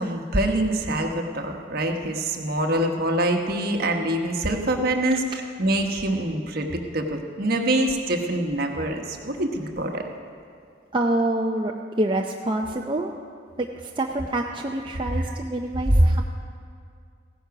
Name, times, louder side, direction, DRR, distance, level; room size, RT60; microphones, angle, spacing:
voice 1, 0.0-10.0 15.1-15.4 15.9-16.0, right 1 dB, 55° right, 3 dB, 1.2 m, -25 dB
voice 2, 10.9-13.1 13.6-16.2, right 1 dB, 25° right, 1 dB, 0.5 m, -26 dB
16.0 x 10.0 x 5.9 m, 2.2 s
head